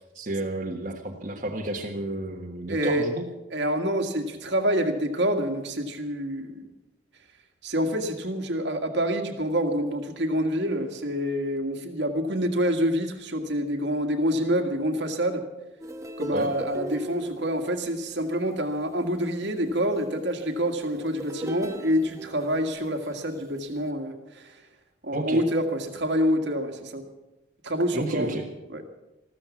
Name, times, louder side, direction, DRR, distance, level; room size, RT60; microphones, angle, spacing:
voice 1, 0.0-3.2 16.3-16.5 25.1-25.4 27.9-28.4, right 1 dB, 40° right, -1 dB, 1.5 m, -31 dB
voice 2, 2.7-3.1 3.5-6.7 7.6-15.4 16.2-24.5 25.0-27.0 27.6-28.4 28.7-28.8, equal, 60° right, 4 dB, 1.9 m, -27 dB
sound 1, 15.8-23.1 23.7-23.9, right 1 dB, 15° right, 1.1 m, -38 dB
14.5 x 13.5 x 7.2 m, 1.0 s
head